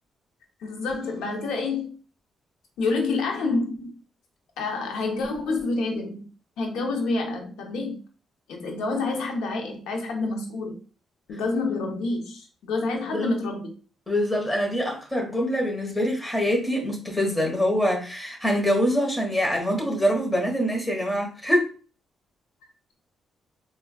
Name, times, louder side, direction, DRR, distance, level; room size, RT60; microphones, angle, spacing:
voice 1, 0.6-1.9 2.8-4.0 4.6-6.3 6.6-8.0 8.5-10.8 11.3-13.7, left 3 dB, 90° left, 2 dB, 0.8 m, -28 dB
voice 2, 14.1-21.7, equal, 10° left, 0 dB, 1.2 m, -24 dB
4.3 x 2.3 x 2.3 m, 0.37 s
cardioid pair, 95°, 0 cm